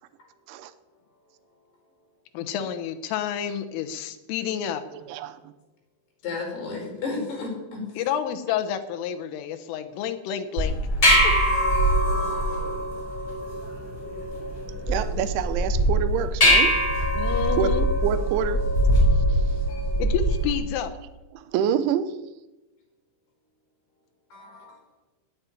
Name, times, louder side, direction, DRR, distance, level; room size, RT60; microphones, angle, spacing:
voice 1, 2.4-4.8 8.0-10.8 11.2-11.3 17.2-17.9 20.0-20.9, left 9 dB, 90° left, 9 dB, 3.6 m, -29 dB
voice 2, 4.9-5.5 14.9-16.7 17.6-18.6 19.3-19.4 21.3-22.1, right 8 dB, 80° right, 11 dB, 3.2 m, -27 dB
voice 3, 6.2-7.8 24.3-24.7, left 3 dB, 55° left, -1 dB, 6.6 m, -32 dB
sound 1, 10.6-20.5, equal, 25° left, 5.7 m, -22 dB
19.0 x 7.3 x 9.4 m, 1.1 s
omnidirectional pair, 5.6 m